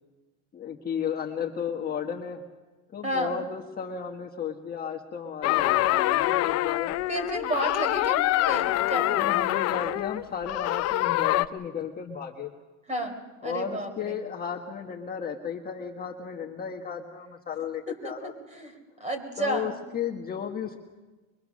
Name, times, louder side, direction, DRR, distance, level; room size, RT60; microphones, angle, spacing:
voice 1, 0.5-2.4 2.9-7.0 8.8-12.5 13.4-18.3 19.4-20.8, left 7 dB, 25° left, 1 dB, 1.4 m, -34 dB
sound 1, 5.4-11.5, left 16 dB, 50° left, 0.7 m, -25 dB
voice 2, 7.1-9.2 12.9-13.2 13.4-14.2 17.9-18.1 18.5-18.7 19.0-19.8, right 1 dB, 20° right, 7 dB, 4.2 m, -31 dB
24.0 x 23.0 x 6.4 m, 1.2 s
supercardioid pair, 130°, 33 cm